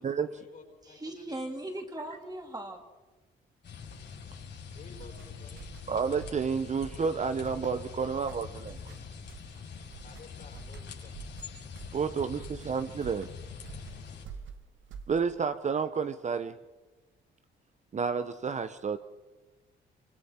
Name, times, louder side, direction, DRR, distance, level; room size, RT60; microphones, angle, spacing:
voice 1, 0.0-1.8 4.7-5.7 10.0-11.1, left 4 dB, 45° left, 3 dB, 4.4 m, -53 dB
voice 2, 0.8-2.8, right 1 dB, 20° right, 3 dB, 2.8 m, -39 dB
sound 1, 3.6-14.2, left 6 dB, 60° left, 6.3 m, -44 dB
sound 2, 4.9-15.5, right 6 dB, 75° right, 1.4 m, -48 dB
voice 3, 5.9-8.9 11.9-13.3 15.1-16.6 17.9-19.0, right 6 dB, 35° right, 11 dB, 0.8 m, -30 dB
25.5 x 25.0 x 4.4 m, 1.2 s
cardioid pair, 90°, 20 cm